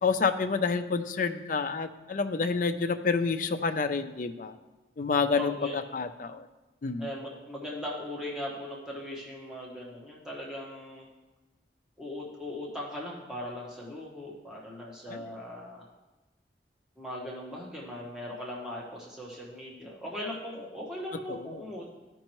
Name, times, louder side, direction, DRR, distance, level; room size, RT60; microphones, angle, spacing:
voice 1, 0.0-4.5 5.0-6.5 6.8-7.1 15.1-15.3 21.3-21.7, left 4 dB, 45° left, 9 dB, 0.4 m, -29 dB
voice 2, 5.3-5.8 7.0-11.1 12.0-15.9 17.0-21.9, left 1 dB, 5° right, -4 dB, 1.1 m, -39 dB
13.0 x 5.3 x 3.0 m, 1.1 s
head